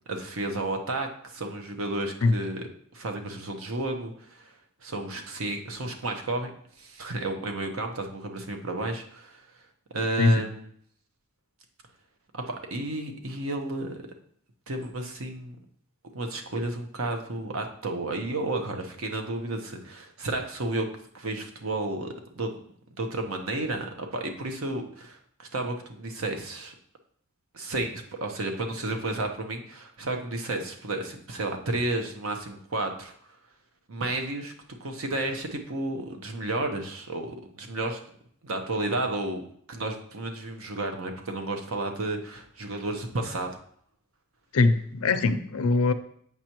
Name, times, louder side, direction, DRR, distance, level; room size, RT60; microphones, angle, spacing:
voice 1, 0.1-4.5 4.8-6.5 6.8-9.4 9.9-10.7 12.3-14.0 14.7-15.6 16.1-20.9 21.1-22.5 23.0-26.7 27.5-33.1 33.9-34.5 34.8-38.0 38.4-43.6, right 2 dB, 70° right, 4 dB, 0.9 m, -32 dB
voice 2, 44.5-45.9, left 3 dB, 80° left, 10 dB, 0.5 m, -22 dB
7.8 x 5.5 x 3.0 m, 0.64 s
head